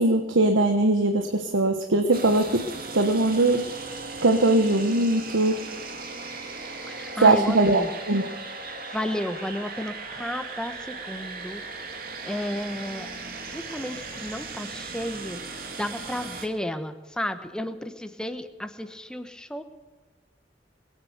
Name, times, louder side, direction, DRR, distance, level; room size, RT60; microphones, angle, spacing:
voice 1, 0.0-2.6 2.9-3.6 4.2-5.6 7.2-7.8 8.1-8.3, right 2 dB, 85° right, 6 dB, 1.2 m, -20 dB
sound 1, 2.1-16.5, right 3 dB, 50° right, 2.0 m, -37 dB
voice 2, 6.8-7.9 8.6-11.6 12.2-13.1 13.4-19.6, left 1 dB, 5° left, 8 dB, 1.1 m, -33 dB
21.0 x 9.4 x 6.7 m, 1.3 s
head